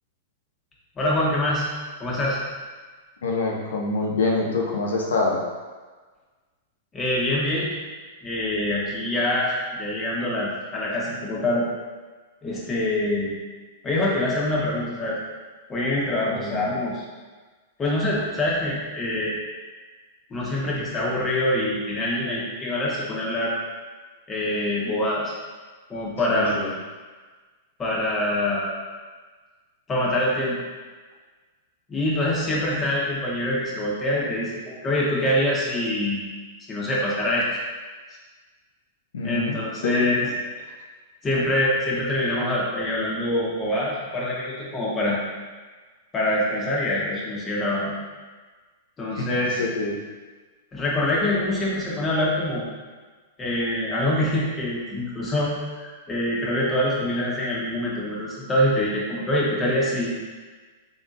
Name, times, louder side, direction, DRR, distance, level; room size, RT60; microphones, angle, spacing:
voice 1, 1.0-1.7 2.0-2.4 6.9-7.7 8.2-11.7 12.4-13.3 13.8-15.2 15.7-17.0 17.8-19.3 20.3-23.5 24.3-25.3 25.9-26.6 27.8-28.7 29.9-30.6 31.9-36.2 36.7-37.4 39.2-40.2 41.2-45.2 46.1-48.0 49.0-49.6 50.7-52.7 53.4-60.1, left 1 dB, 20° left, -5 dB, 1.1 m, -25 dB
voice 2, 3.2-5.4 16.3-16.7 26.3-26.7 39.1-39.6 39.8-40.3 49.1-50.0, left 3 dB, 85° left, -2 dB, 0.8 m, -26 dB
4.0 x 3.5 x 2.5 m, 1.4 s
hypercardioid pair, 120°, 0 cm